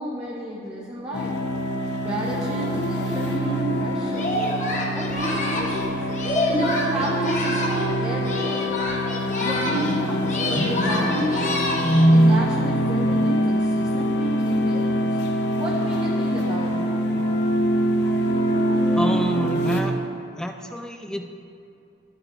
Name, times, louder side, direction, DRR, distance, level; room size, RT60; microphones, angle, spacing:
voice 1, 0.0-1.3 2.0-4.3 4.9-6.0 6.5-7.6 8.0-8.8 9.4-11.5 12.1-17.1, right 1 dB, 20° right, -5 dB, 0.7 m, -30 dB
sound 1, 1.1-19.8, equal, 70° left, 0.7 m, -23 dB
Singing, 4.1-7.9 8.2-10.0 10.2-12.1, left 1 dB, 45° left, 1.0 m, -27 dB
voice 2, 18.9-19.9 20.4-21.3, equal, 5° left, 4 dB, 0.4 m, -28 dB
12.0 x 7.9 x 2.2 m, 2.6 s
head